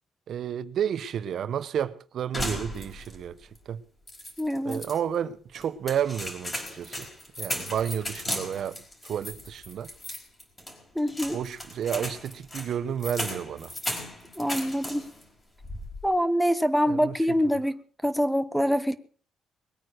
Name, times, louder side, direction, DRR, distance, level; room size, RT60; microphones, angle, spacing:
voice 1, 0.3-3.4 3.7-3.8 4.6-7.1 7.4-9.9 11.3-13.7 16.8-17.1, right 9 dB, 65° right, 1.0 m, -31 dB
sound 1, 2.3-3.3 3.6-3.7 4.1-5.0 5.6-15.2 15.6-16.1, left 1 dB, 20° left, 4.8 m, -36 dB
voice 2, 4.4-4.8 10.9-11.4 14.4-15.1 16.0-18.9, equal, ahead, 1.0 m, -25 dB
21.0 x 9.2 x 6.5 m
cardioid pair, 135°, 0 cm